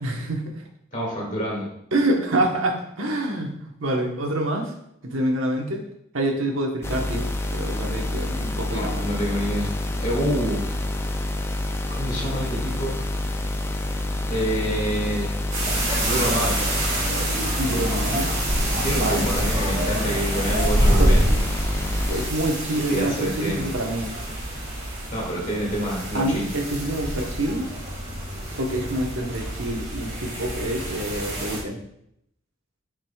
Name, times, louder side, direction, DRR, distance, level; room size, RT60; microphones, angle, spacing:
voice 1, 0.0-0.6 1.9-4.7 5.0-5.8 6.1-9.0 17.5-18.4 18.7-19.3 21.0-21.2 22.1-24.1 26.1-27.7 28.6-31.8, right 1 dB, 80° right, 2 dB, 1.1 m, -26 dB
voice 2, 0.9-1.7 8.7-10.8 11.9-13.0 14.3-15.4 16.0-16.6 18.8-21.2 22.9-23.7 25.1-26.5, equal, 40° left, -3 dB, 2.2 m, -27 dB
sound 1, 6.8-22.3, left 1 dB, 10° left, 0.3 m, -28 dB
sound 2, 15.5-31.6, right 1 dB, 35° right, 2.0 m, -26 dB
9.2 x 5.1 x 2.3 m, 0.75 s
head